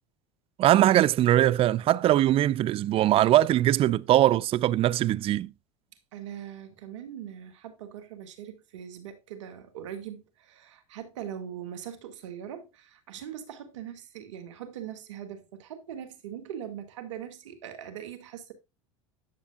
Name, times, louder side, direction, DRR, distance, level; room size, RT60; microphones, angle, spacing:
voice 1, 0.6-5.5, right 13 dB, 40° right, 0.4 m, -21 dB
voice 2, 6.1-18.5, right 9 dB, 75° right, 1.9 m, -41 dB
10.5 x 7.2 x 2.4 m
hypercardioid pair, 90°, 16 cm